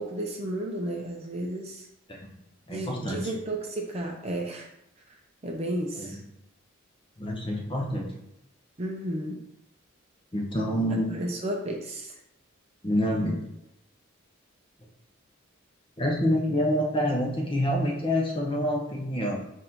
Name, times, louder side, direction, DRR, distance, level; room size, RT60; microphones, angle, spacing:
voice 1, 0.0-1.9 2.7-4.7 5.1-5.2 5.4-6.2 8.8-9.4 10.9-12.2, right 1 dB, 30° right, 0 dB, 0.5 m, -33 dB
voice 2, 2.7-3.2 6.0-6.1 7.2-8.1 10.3-11.1 12.8-13.4 16.0-19.4, equal, 25° left, -1 dB, 0.8 m, -27 dB
4.0 x 2.6 x 4.3 m, 0.84 s
head